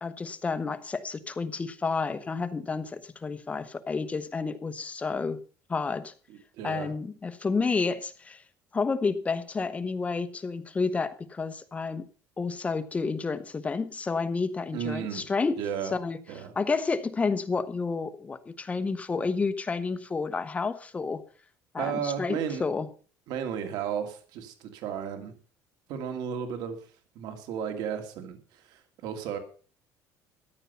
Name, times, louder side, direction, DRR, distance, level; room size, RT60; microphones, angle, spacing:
voice 1, 0.0-5.4 5.7-6.1 6.6-8.4 8.7-12.0 12.4-15.6 15.9-16.2 16.6-21.2 21.7-22.9, left 4 dB, 20° left, 11 dB, 1.0 m, -30 dB
voice 2, 6.6-6.9 14.7-15.2 15.6-15.9 16.3-16.5 21.8-22.6 23.3-25.3 25.9-26.8 27.2-29.4, right 8 dB, 70° right, 6 dB, 2.4 m, -33 dB
14.0 x 9.8 x 5.5 m, 0.40 s
cardioid pair, 140°, 7 cm